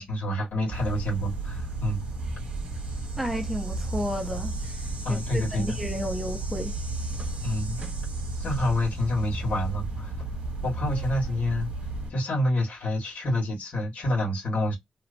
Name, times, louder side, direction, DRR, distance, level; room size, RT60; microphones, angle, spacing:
voice 1, 0.0-2.0 5.0-5.8 7.4-7.8 8.4-10.3 10.6-11.7 12.1-14.8, left 1 dB, 70° left, 1.6 m, -28 dB
sound 1, 0.7-12.1, right 2 dB, 55° right, 1.0 m, -33 dB
voice 2, 3.2-4.5 5.1-6.7, equal, 10° right, 0.6 m, -32 dB
2.9 x 2.0 x 2.5 m
wide cardioid pair, 160°, 3 cm